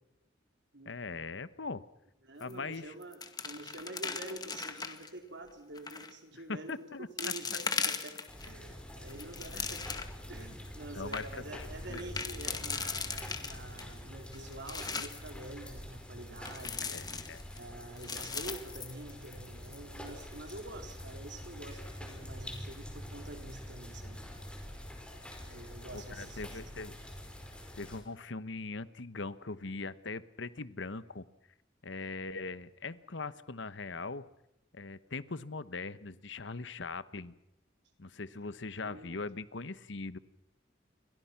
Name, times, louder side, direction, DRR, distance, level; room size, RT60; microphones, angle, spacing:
voice 1, 0.8-1.8 2.4-2.9 6.3-7.6 9.5-9.7 10.9-12.0 16.8-17.4 25.9-27.0 27.7-31.2 31.8-34.2 34.7-37.3 38.0-40.2, left 3 dB, 65° left, 15 dB, 1.1 m, -41 dB
voice 2, 2.2-6.9 7.2-8.1 8.4-10.0 10.3-16.9 17.5-24.2 25.5-26.7 38.8-39.2, right 2 dB, 65° right, 5 dB, 4.1 m, -47 dB
sound 1, 2.4-2.8 3.0-5.1 5.8-6.1 6.7-6.8 7.2-8.5 9.0-10.3 10.7-10.8 11.0-11.2 11.9-13.8 14.3-15.3 16.5-17.6 18.0-19.5 19.7-19.8 20.3-20.6, left 5 dB, 20° left, 1.9 m, -38 dB
sound 2, 8.3-28.0, equal, 5° left, 4.8 m, -46 dB
29.0 x 24.0 x 5.9 m, 0.86 s
head